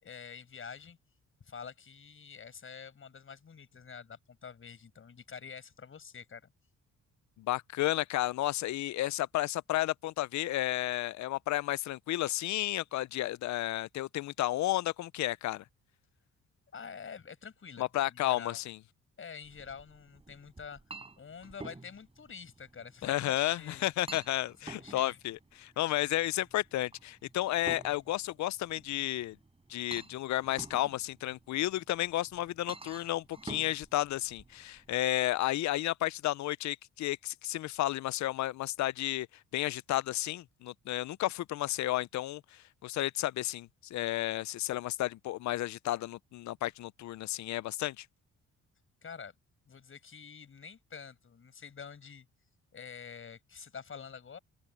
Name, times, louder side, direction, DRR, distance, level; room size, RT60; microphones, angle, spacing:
voice 1, 0.0-1.0 1.4-6.5 16.7-18.6 19.2-20.8 21.2-23.9 24.6-25.2 49.0-49.3 49.7-52.3 52.7-54.4, left 6 dB, 45° left, 6.2 m, -47 dB
voice 2, 7.4-15.6 17.8-18.8 23.0-29.4 29.7-39.3 39.5-48.1, left 15 dB, 65° left, 0.6 m, -32 dB
Chink clink, 19.4-35.0, right 3 dB, 20° right, 5.2 m, -50 dB
open air
cardioid pair, 90°, 30 cm